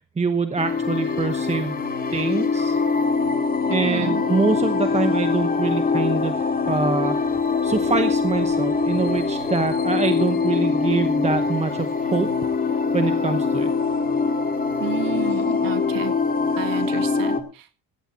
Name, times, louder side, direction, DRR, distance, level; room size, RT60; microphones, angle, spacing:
voice 1, 0.2-1.8 2.1-2.8 3.7-6.4 6.7-7.3 7.6-12.3 12.7-13.7, right 4 dB, 20° right, 0.9 m, -25 dB
sound 1, 0.6-17.4, left 4 dB, 25° left, 2.0 m, -23 dB
voice 2, 3.7-4.2 14.8-16.2 16.6-17.7, right 12 dB, 80° right, 2.0 m, -31 dB
17.5 x 16.0 x 2.8 m
cardioid pair, 145°, 33 cm